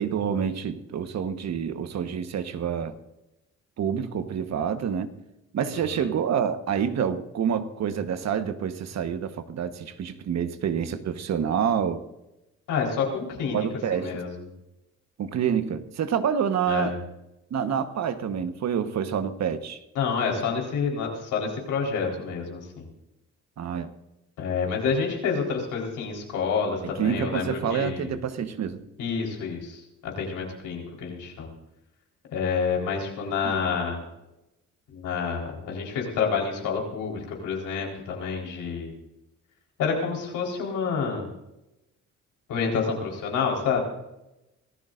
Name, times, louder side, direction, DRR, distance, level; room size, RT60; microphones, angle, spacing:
voice 1, 0.0-2.9 3.8-5.1 5.5-12.0 13.5-14.1 15.2-16.9 17.5-19.8 23.6-23.9 26.8-28.8 33.4-33.5, right 8 dB, 60° right, 1.3 m, -27 dB
voice 2, 12.7-14.3 16.7-16.9 19.9-22.9 24.4-28.2 29.0-31.5 32.3-34.0 34.9-38.9 39.8-41.3 42.5-43.8, left 5 dB, 85° left, 4.3 m, -28 dB
25.5 x 14.5 x 2.6 m
cardioid pair, 90°, 30 cm